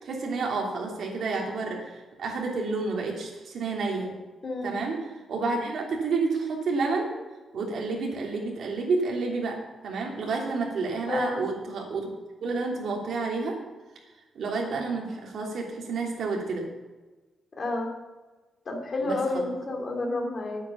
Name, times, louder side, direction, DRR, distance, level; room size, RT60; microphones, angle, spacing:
voice 1, 0.0-4.1 4.6-7.2 7.5-9.6 9.8-12.1 12.4-13.6 14.3-16.7 19.0-19.2 19.4-19.5, right 3 dB, 60° right, 0 dB, 3.1 m, -30 dB
voice 2, 4.4-4.8 11.1-11.4 17.6-17.9 18.7-20.6, left 2 dB, 35° left, 1 dB, 2.6 m, -30 dB
9.8 x 9.1 x 7.0 m, 1.2 s
wide cardioid pair, 160°, 0 cm